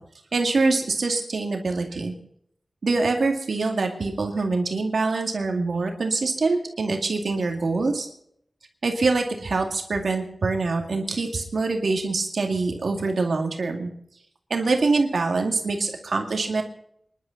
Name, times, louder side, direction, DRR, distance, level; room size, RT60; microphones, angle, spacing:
voice 1, 0.3-2.1 2.8-8.1 8.8-13.9 14.5-16.6, right 3 dB, 80° right, 3 dB, 2.2 m, -24 dB
26.0 x 11.5 x 4.0 m, 0.70 s
wide cardioid pair, 80°, 0 cm